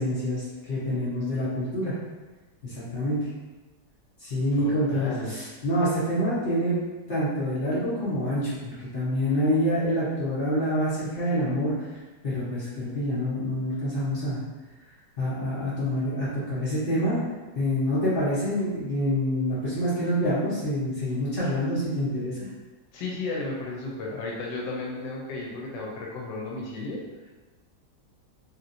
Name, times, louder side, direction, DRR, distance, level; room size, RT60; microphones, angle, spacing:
voice 1, 0.0-2.0 2.6-3.3 4.2-6.8 7.1-8.6 8.9-11.9 12.2-14.4 15.2-17.2 17.5-22.5, equal, 45° left, -10 dB, 0.8 m, -26 dB
voice 2, 4.6-5.3 22.9-27.3, left 3 dB, 90° left, -2 dB, 1.2 m, -34 dB
2.9 x 2.8 x 2.5 m, 1.2 s
omnidirectional pair, 1.9 m